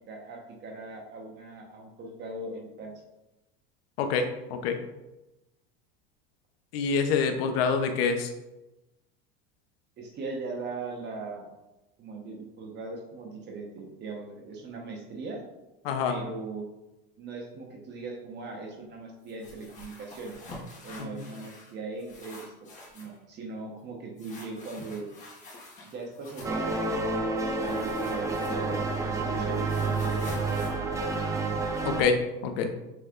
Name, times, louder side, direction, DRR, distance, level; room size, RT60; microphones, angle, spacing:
voice 1, 0.1-2.9 10.0-11.5 12.0-15.4 16.0-16.7 17.2-20.4 20.8-22.7 22.9-25.1 25.8-30.7, right 3 dB, 35° right, 1 dB, 1.0 m, -39 dB
voice 2, 4.0-4.8 6.7-8.3 15.8-16.2 21.0-21.2 31.8-32.2 32.4-32.7, left 5 dB, 80° left, 6 dB, 0.7 m, -26 dB
sound 1, 19.2-21.7 22.0-23.2 24.2-26.7 27.6-28.9 29.2-31.8, left 2 dB, 25° left, 1.3 m, -47 dB
sound 2, 26.4-32.0, right 3 dB, 10° right, 0.4 m, -29 dB
6.2 x 3.2 x 2.4 m, 0.98 s
supercardioid pair, 130°, 29 cm